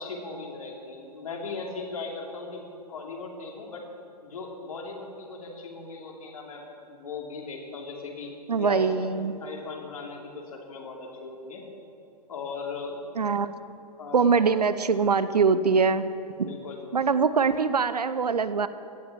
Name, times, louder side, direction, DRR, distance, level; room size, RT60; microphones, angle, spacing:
voice 1, 0.0-3.8 4.2-11.6 12.3-13.0 14.0-14.3 16.4-16.8, left 4 dB, 55° left, 0 dB, 3.1 m, -38 dB
voice 2, 8.5-9.4 13.2-13.5 14.1-16.0 16.4-16.5 16.9-18.7, right 5 dB, 70° right, 13 dB, 0.8 m, -23 dB
17.0 x 12.0 x 6.0 m, 2.8 s
figure-of-eight pair, 115°, 21 cm